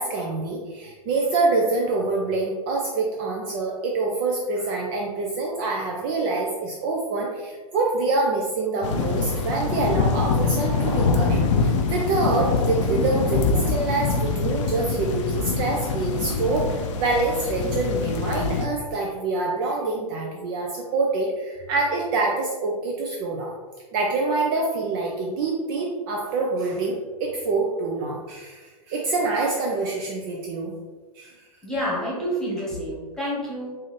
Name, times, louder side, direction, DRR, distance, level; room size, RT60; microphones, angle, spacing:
voice 1, 0.0-23.5 23.9-30.7 31.2-31.4, right 3 dB, 35° right, 0 dB, 0.5 m, -26 dB
sound 1, 8.8-18.7, left 4 dB, 50° left, 0.5 m, -24 dB
voice 2, 31.6-33.7, equal, 5° left, -6 dB, 1.2 m, -28 dB
3.7 x 2.6 x 3.3 m, 1.3 s
hypercardioid pair, 125°, 20 cm